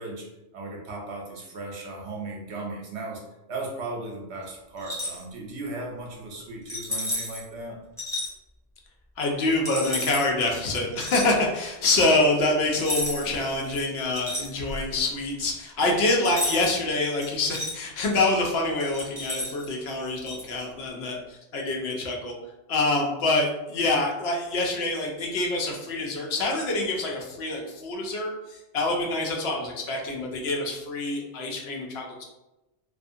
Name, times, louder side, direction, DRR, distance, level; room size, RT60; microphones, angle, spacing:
voice 1, 0.0-3.2 3.5-7.8, right 2 dB, 70° right, -1 dB, 0.9 m, -36 dB
sound 1, 4.8-5.2 6.7-7.4 8.0-8.3 9.6-10.3 11.0-11.3 12.7-13.4 13.7-14.9 16.2-16.8 17.2-17.7 18.8-19.7 20.3-20.4, left 1 dB, 5° left, 0.5 m, -32 dB
voice 2, 9.2-22.3 22.7-32.2, left 2 dB, 70° left, 0 dB, 0.8 m, -26 dB
2.4 x 2.4 x 2.6 m, 0.97 s
omnidirectional pair, 1.2 m